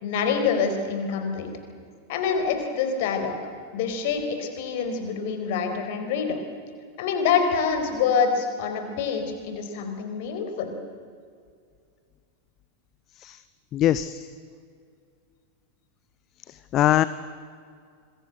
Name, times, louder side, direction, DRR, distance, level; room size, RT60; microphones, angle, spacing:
voice 1, 0.0-1.5 2.1-3.4 3.7-6.4 7.0-10.8, left 6 dB, 50° left, 6 dB, 4.3 m, -26 dB
voice 2, 13.7-14.3 16.5-17.0, left 13 dB, 35° left, 15 dB, 0.7 m, -22 dB
26.0 x 22.0 x 7.9 m, 2.2 s
figure-of-eight pair, 90°, 0 cm